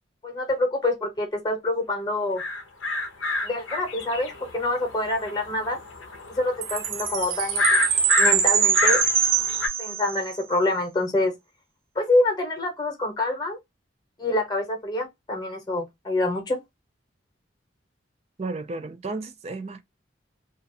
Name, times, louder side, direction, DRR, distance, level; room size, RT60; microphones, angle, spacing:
voice 1, 0.2-2.4 3.4-5.8 6.3-7.8 8.2-9.0 9.8-11.3 12.0-13.6 14.2-16.6, left 2 dB, 20° left, 0.8 m, -26 dB
sound 1, 2.4-9.7, left 2 dB, 85° left, 0.5 m, -28 dB
Chime, 6.6-10.3, right 7 dB, 90° right, 0.6 m, -23 dB
voice 2, 18.4-19.8, right 3 dB, 35° right, 0.4 m, -33 dB
2.3 x 2.1 x 2.6 m
head